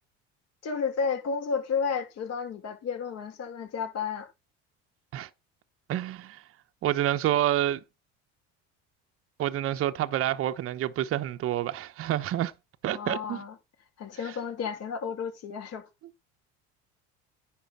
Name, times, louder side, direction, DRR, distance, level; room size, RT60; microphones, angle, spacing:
voice 1, 0.6-4.3 12.9-13.6 14.0-15.8, left 6 dB, 55° left, 5.2 m, -32 dB
voice 2, 5.9-6.4 6.8-7.8 9.4-12.5 12.8-13.4, right 12 dB, 45° right, 0.9 m, -28 dB
10.5 x 5.0 x 7.3 m
supercardioid pair, 100°, 31 cm